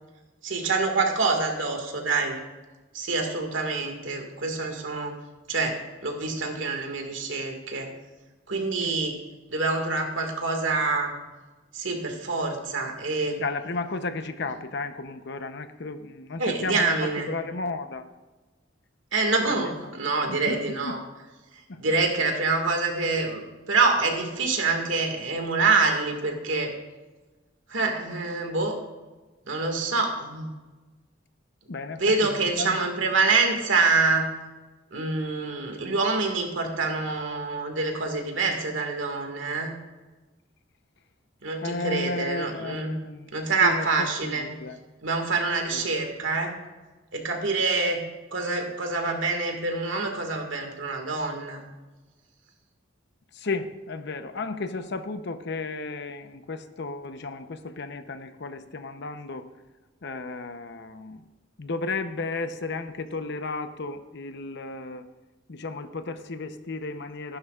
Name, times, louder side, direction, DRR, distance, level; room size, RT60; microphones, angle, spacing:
voice 1, 0.4-2.4 2.9-5.2 5.5-7.9 8.5-9.2 9.5-11.1 11.7-13.4 14.4-14.5 16.4-17.3 19.1-21.0 21.8-26.7 27.7-28.8 29.5-30.5 32.0-34.3 34.9-39.7 41.4-43.1 43.3-44.5 45.0-46.6 47.1-48.0 48.3-51.6, right 3 dB, 85° right, 3 dB, 1.9 m, -26 dB
voice 2, 13.4-18.1 19.6-19.7 20.2-21.0 21.7-21.8 31.7-32.9 41.6-44.8 45.7-45.8 53.3-59.5 60.0-61.2 61.6-65.0 65.5-67.4, left 3 dB, 65° left, 9 dB, 0.8 m, -34 dB
14.5 x 11.5 x 2.4 m, 1.2 s
head